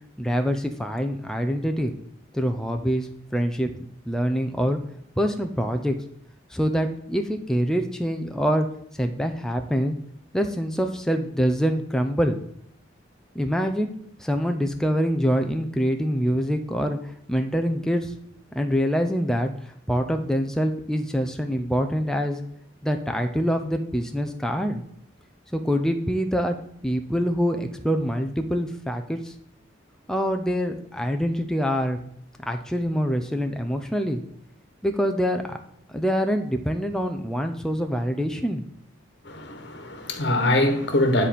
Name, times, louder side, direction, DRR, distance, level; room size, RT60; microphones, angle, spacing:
voice 1, 0.2-1.9 2.3-3.7 4.1-4.8 5.2-6.0 6.5-8.7 9.0-10.0 10.3-12.4 13.3-13.9 14.2-18.2 18.5-22.4 22.8-24.8 25.5-26.6 26.8-29.3 30.1-32.0 32.5-34.2 34.8-35.6 35.9-38.6, equal, 5° left, 4 dB, 0.6 m, -25 dB
voice 2, 39.2-41.3, left 1 dB, 60° left, 6 dB, 1.5 m, -23 dB
9.9 x 4.3 x 5.2 m, 0.71 s
head